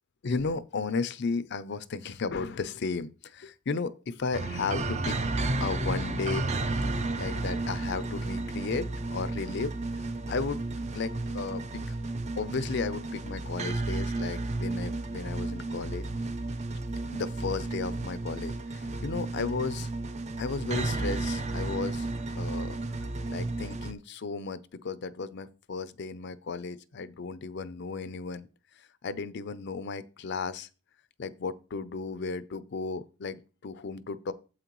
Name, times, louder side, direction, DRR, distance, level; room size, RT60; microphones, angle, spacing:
voice 1, 0.2-5.2 5.6-6.5 7.2-10.6 10.9-11.9 12.4-16.1 17.1-19.9 20.4-22.1 22.4-22.8 23.3-28.5 28.7-30.7 31.2-34.3, left 4 dB, 55° left, 0.5 m, -34 dB
sound 1, 4.3-23.9, right 2 dB, 35° right, 0.6 m, -32 dB
8.9 x 7.8 x 3.0 m
head